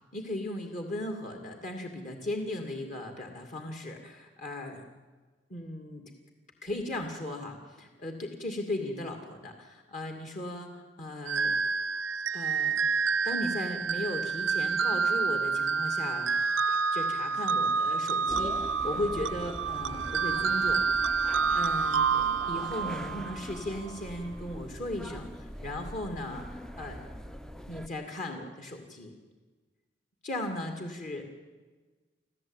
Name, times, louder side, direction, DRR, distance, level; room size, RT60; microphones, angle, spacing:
voice 1, 0.1-4.8 5.5-6.0 6.6-11.5 12.3-12.8 13.2-16.4 16.7-20.8 21.5-27.1 27.7-29.1 30.2-31.3, left 1 dB, 45° left, 3 dB, 2.5 m, -37 dB
sound 1, 11.3-23.6, right 5 dB, 80° right, 0.7 m, -28 dB
sound 2, 18.3-27.9, equal, 5° left, 0.6 m, -43 dB
27.5 x 15.0 x 9.0 m, 1.3 s
head